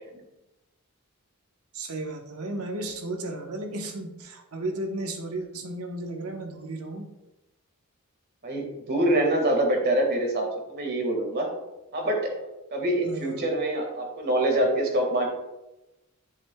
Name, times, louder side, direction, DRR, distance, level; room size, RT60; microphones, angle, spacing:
voice 1, 1.7-7.1 13.0-13.5, right 2 dB, 75° right, 3 dB, 1.1 m, -34 dB
voice 2, 8.4-11.5 11.9-15.3, right 1 dB, 50° right, 1 dB, 1.8 m, -25 dB
11.0 x 7.1 x 2.3 m, 0.97 s
head